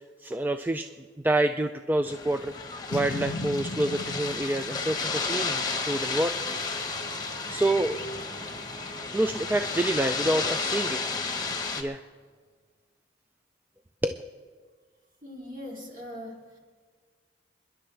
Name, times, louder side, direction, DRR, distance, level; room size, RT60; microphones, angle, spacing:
voice 1, 0.2-0.9 1.2-6.4 7.5-8.0 9.1-11.1 11.8-12.0 14.0-14.2, right 1 dB, 10° right, 7 dB, 0.3 m, -27 dB
sound 1, 2.0-11.8, left 4 dB, 20° left, 1.1 m, -32 dB
Boom, 2.9-6.2, left 3 dB, 85° left, 0.6 m, -37 dB
sound 2, 4.9-12.3, right 2 dB, 80° right, 2.5 m, -49 dB
voice 2, 15.2-16.6, left 1 dB, 45° right, -2 dB, 3.0 m, -41 dB
27.5 x 11.0 x 3.3 m, 1.5 s
head